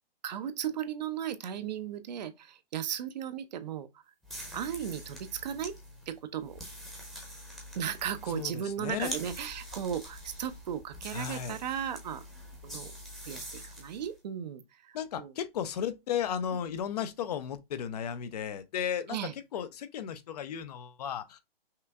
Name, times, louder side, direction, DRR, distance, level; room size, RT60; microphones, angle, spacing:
voice 1, 0.2-3.9 4.5-5.7 6.1-6.6 7.7-12.3 12.6-12.9 13.2-15.3 16.5-16.6 19.1-19.3, right 9 dB, 45° right, 0.6 m, -36 dB
sound 1, 4.2-14.1, equal, ahead, 0.8 m, -45 dB
voice 2, 8.3-9.2 11.1-11.6 14.9-19.2 19.5-21.4, left 8 dB, 40° left, 0.6 m, -34 dB
5.6 x 2.5 x 2.3 m
figure-of-eight pair, 130°, 30 cm